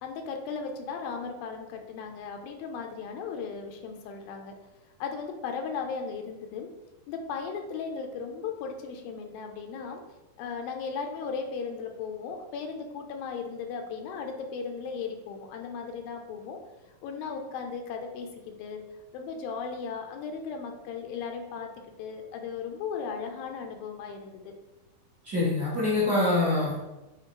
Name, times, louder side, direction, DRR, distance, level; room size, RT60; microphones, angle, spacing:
voice 1, 0.0-4.6 5.0-6.7 7.1-10.0 10.4-16.6 17.0-18.8 19.1-21.7 22.0-24.5, left 5 dB, 85° left, 4 dB, 2.5 m, -36 dB
voice 2, 25.2-26.8, left 2 dB, 45° right, -8 dB, 1.3 m, -25 dB
7.6 x 4.4 x 3.1 m, 1.0 s
omnidirectional pair, 4.2 m